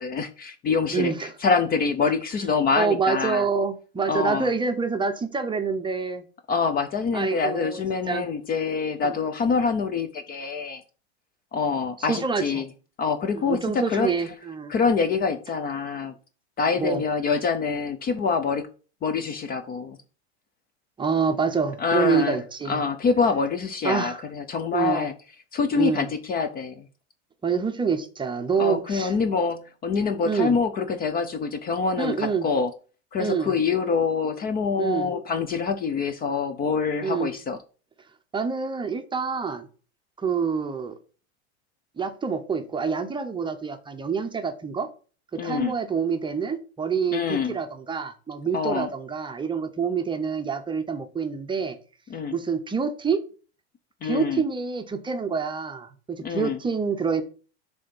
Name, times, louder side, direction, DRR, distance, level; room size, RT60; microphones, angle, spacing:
voice 1, 0.0-1.1 1.4-3.5 4.1-4.5 6.5-10.8 11.5-12.7 13.0-14.1 14.7-16.1 16.6-18.7 19.0-20.0 21.8-22.4 22.7-25.1 25.5-26.8 28.6-32.7 33.1-37.6 45.4-45.7 47.1-47.6 48.5-48.9 52.1-52.4 54.0-54.4 56.2-56.6, left 5 dB, 25° left, 0.5 m, -25 dB
voice 2, 0.9-1.3 2.7-6.2 7.1-7.8 8.1-8.3 9.0-9.2 12.0-12.6 13.3-14.7 16.8-17.0 21.0-22.8 23.8-24.2 24.7-25.1 25.7-26.1 27.4-29.1 30.3-30.6 32.0-32.4 33.2-33.5 34.8-35.1 37.0-37.3 38.3-39.7 40.2-40.9 42.0-44.9 45.4-51.8 52.3-53.2 54.0-57.2, right 5 dB, 15° right, 0.7 m, -27 dB
6.4 x 3.5 x 5.3 m
supercardioid pair, 120°, 35 cm